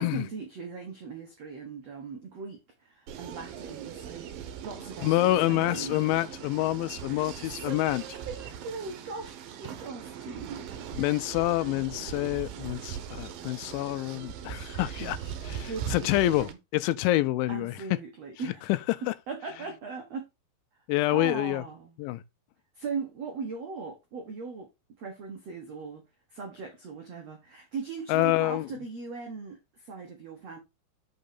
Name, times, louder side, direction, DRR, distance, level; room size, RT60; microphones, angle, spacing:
voice 1, 0.0-4.3 4.6-6.0 7.2-10.8 15.0-15.3 15.6-16.6 17.5-18.7 19.3-20.2 21.1-22.0 22.7-24.7 25.0-26.0 26.3-30.6, right 4 dB, 90° right, 1.4 m, -39 dB
sound 1, 3.1-16.5, right 9 dB, 70° right, 2.3 m, -40 dB
voice 2, 5.0-8.0 10.9-15.2 15.5-17.8 18.7-19.1 20.9-21.6 22.0-22.2 28.1-28.7, left 16 dB, 85° left, 3.0 m, -27 dB
6.4 x 5.8 x 5.4 m
omnidirectional pair, 5.3 m